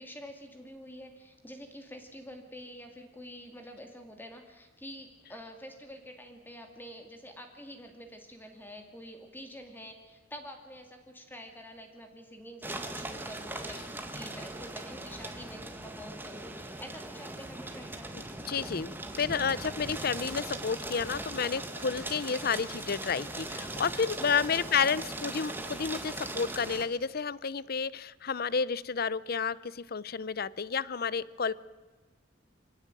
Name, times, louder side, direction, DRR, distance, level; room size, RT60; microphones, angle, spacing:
voice 1, 0.0-18.1 22.3-22.4 24.5-25.0, equal, 10° left, 4 dB, 2.5 m, -47 dB
sound 1, 12.6-26.8, right 2 dB, 10° right, 2.0 m, -39 dB
voice 2, 18.5-18.9 19.2-31.5, left 6 dB, 50° left, 20 dB, 0.7 m, -31 dB
25.0 x 17.0 x 9.2 m, 1.3 s
head